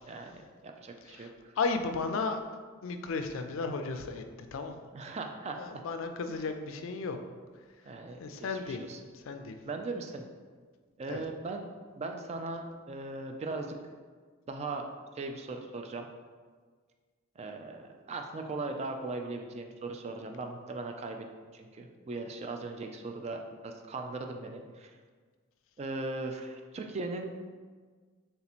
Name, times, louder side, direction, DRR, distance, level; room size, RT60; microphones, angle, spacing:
voice 1, 0.1-1.5 4.9-5.6 7.8-9.0 9.7-10.3 11.0-11.7 12.0-13.8 14.5-14.9 15.1-16.1 17.4-21.3 21.5-25.0 25.8-27.3, right 3 dB, 30° right, 4 dB, 0.3 m, -39 dB
voice 2, 1.1-2.4 2.8-4.2 4.5-4.9 5.6-7.2 8.2-8.8 9.1-9.5 11.1-11.2, left 4 dB, 70° left, 7 dB, 0.4 m, -34 dB
3.4 x 2.9 x 4.1 m, 1.5 s
head